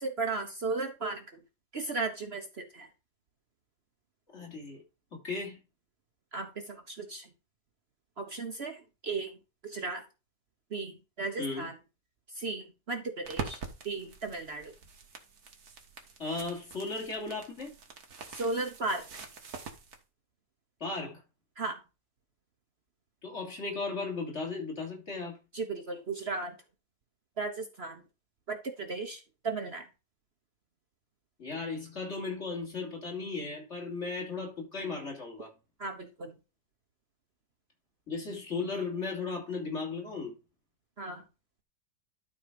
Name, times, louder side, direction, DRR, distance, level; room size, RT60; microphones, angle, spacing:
voice 1, 0.0-1.4 1.7-2.9 6.3-7.3 8.2-9.3 9.6-10.0 10.7-11.7 12.3-13.6 13.8-14.7 18.4-19.1 21.6-21.8 25.5-26.5 27.4-28.0 28.5-29.9 35.8-36.3 41.0-41.2, right 3 dB, 45° right, 1.1 m, -35 dB
voice 2, 4.3-4.8 5.1-5.6 11.4-11.7 16.2-17.7 20.8-21.2 23.2-25.4 31.4-35.5 38.1-40.3, left 3 dB, 45° left, 3.2 m, -36 dB
sound 1, 13.2-20.0, right 5 dB, 75° right, 1.9 m, -45 dB
12.0 x 4.3 x 5.1 m
omnidirectional pair, 1.7 m